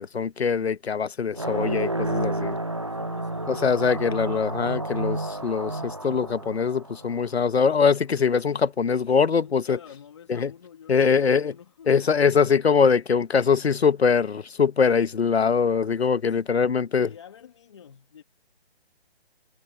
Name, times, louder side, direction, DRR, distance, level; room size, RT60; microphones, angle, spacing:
voice 1, 0.0-2.6 3.5-9.8 10.3-10.5 10.9-11.5 11.9-17.1, left 6 dB, 75° left, 1.2 m, -22 dB
sound 1, 1.3-7.5, right 1 dB, 30° right, 0.4 m, -30 dB
voice 2, 2.9-3.7 9.2-12.1 16.3-16.6 16.9-18.2, left 8 dB, 25° left, 2.2 m, -48 dB
hypercardioid pair, 175°, 32 cm